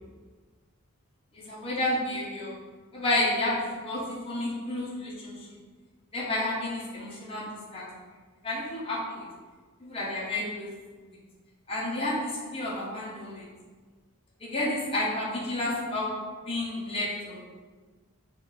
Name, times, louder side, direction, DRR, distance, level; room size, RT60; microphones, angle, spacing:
voice 1, 1.3-2.5 2.9-5.5 6.1-7.9 8.4-9.3 9.8-10.7 11.1-11.2 11.7-13.5 14.4-16.1 16.5-17.4, left 1 dB, 25° left, -6 dB, 0.9 m, -31 dB
4.1 x 3.1 x 4.0 m, 1.4 s
head